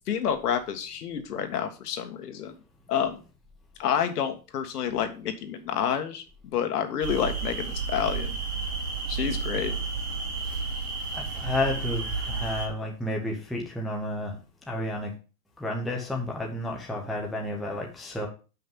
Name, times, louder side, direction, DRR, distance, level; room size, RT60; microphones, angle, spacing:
voice 1, 0.1-2.5 2.9-3.2 3.8-6.2 6.5-8.4 9.1-9.7, left 8 dB, 75° left, 7 dB, 1.8 m, -29 dB
sound 1, 7.0-12.7, right 4 dB, 40° right, 3.2 m, -31 dB
voice 2, 11.1-14.4 14.7-15.1 15.6-18.3, left 1 dB, ahead, -1 dB, 0.6 m, -31 dB
7.2 x 5.6 x 5.3 m, 0.34 s
supercardioid pair, 160°, 46 cm